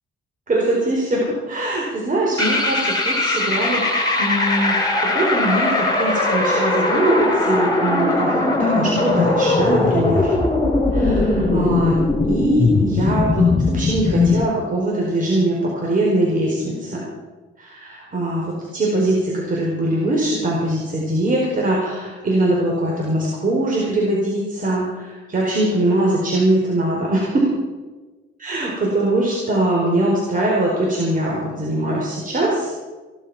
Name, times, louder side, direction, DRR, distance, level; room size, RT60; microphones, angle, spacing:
voice 1, 0.5-10.3 10.9-11.9 12.2-17.0 17.6-27.5 28.4-32.7, right 1 dB, 40° right, -3 dB, 4.5 m, -22 dB
sound 1, 2.4-14.4, left 2 dB, 20° left, 6.2 m, -19 dB
17.0 x 12.0 x 6.1 m, 1.3 s
cardioid pair, 90°, 20 cm